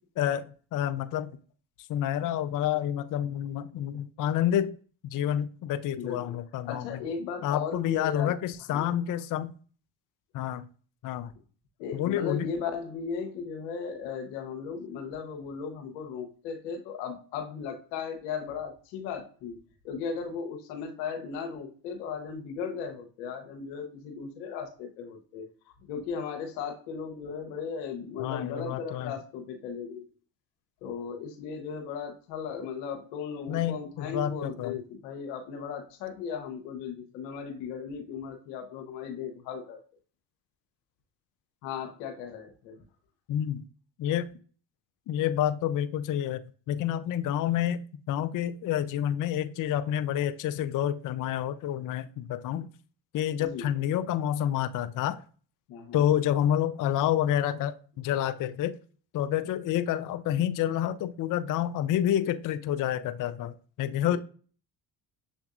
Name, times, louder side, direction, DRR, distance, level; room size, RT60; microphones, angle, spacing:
voice 1, 0.2-1.3 1.9-4.8 5.1-7.0 7.4-9.5 10.3-10.7 11.0-11.3 11.9-12.5 28.2-29.1 33.5-34.8 43.3-43.6 44.0-44.3 45.1-46.4 46.7-52.7 53.1-55.2 55.9-58.7 59.1-64.2, left 11 dB, 40° left, 0.4 m, -28 dB
voice 2, 6.0-6.3 6.6-8.4 8.7-8.9 11.8-19.6 19.8-25.5 25.8-30.0 30.8-39.8 41.6-42.8 53.4-53.7 55.7-56.1 64.1-64.2, left 6 dB, 85° left, 0.9 m, -36 dB
6.8 x 2.6 x 2.4 m
hypercardioid pair, 55°, 50 cm